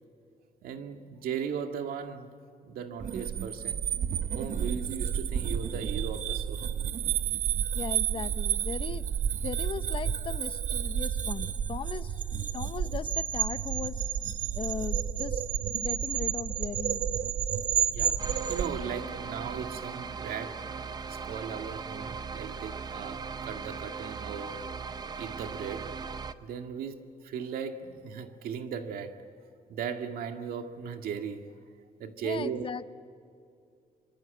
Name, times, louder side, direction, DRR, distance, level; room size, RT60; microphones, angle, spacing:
voice 1, 0.6-2.3 2.6-3.9 4.3-6.7 17.9-20.8 21.1-24.6 25.2-29.2 29.7-31.5 32.0-32.7, right 7 dB, 85° right, 2.1 m, -37 dB
sound 1, 3.0-18.7, right 8 dB, 55° right, 1.0 m, -31 dB
voice 2, 7.7-9.1 9.4-14.0 14.5-17.0 32.2-32.9, left 6 dB, 35° left, 0.9 m, -38 dB
sound 2, 18.2-26.3, right 5 dB, 25° right, 0.8 m, -39 dB
26.5 x 25.5 x 8.4 m
cardioid pair, 135°, 15 cm